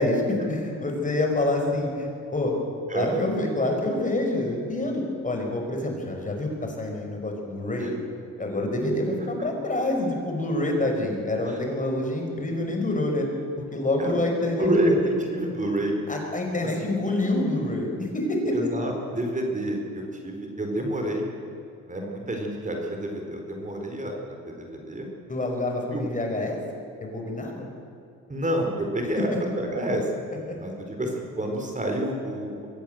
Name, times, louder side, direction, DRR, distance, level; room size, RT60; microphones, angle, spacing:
voice 1, 0.0-2.5 2.9-7.9 8.4-13.3 13.7-14.9 16.1-18.5 25.3-26.6 27.0-27.7 30.5-30.6, left 2 dB, 25° left, 2 dB, 5.4 m, -27 dB
voice 2, 14.6-15.9 18.5-21.2 21.9-24.1 24.5-25.1 25.9-26.0 28.3-30.1 30.6-32.7, right 1 dB, 25° right, 2 dB, 4.3 m, -28 dB
23.0 x 16.0 x 7.8 m, 2.6 s
cardioid pair, 90°, 30 cm